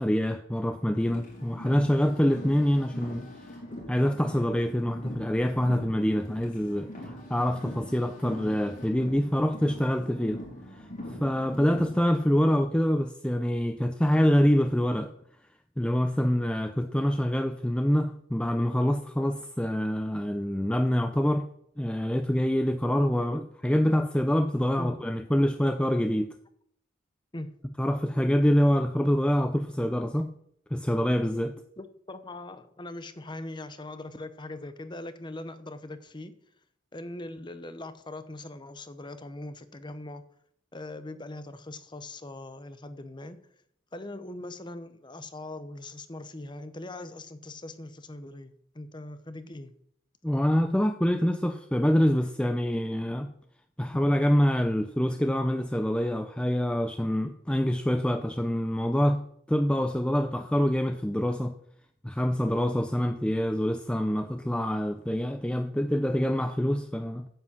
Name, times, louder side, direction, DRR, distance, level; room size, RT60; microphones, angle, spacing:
voice 1, 0.0-3.3 3.9-10.4 10.7-15.1 15.8-21.5 21.8-26.3 27.8-30.3 30.7-31.5 50.2-53.3 53.8-59.2 59.5-61.6 62.0-67.3, equal, 5° left, 0.5 m, -26 dB
Car, 1.0-12.1, left 1 dB, 40° left, 4.5 m, -43 dB
voice 2, 31.8-36.4 36.9-40.2 40.7-43.5 43.9-49.7 53.9-54.0, left 2 dB, 20° left, 0.8 m, -41 dB
9.4 x 8.5 x 7.3 m
head